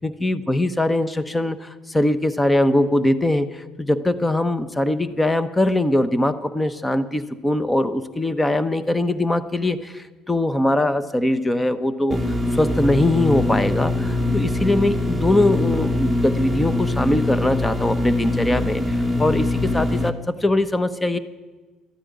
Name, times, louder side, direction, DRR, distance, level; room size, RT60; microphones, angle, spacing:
voice 1, 0.0-12.2 12.5-21.2, left 1 dB, 10° left, 13 dB, 0.9 m, -21 dB
sound 1, 12.1-20.1, left 2 dB, 5° right, 1.5 m, -23 dB
13.0 x 10.0 x 9.3 m, 1.3 s
cardioid pair, 105°, 0 cm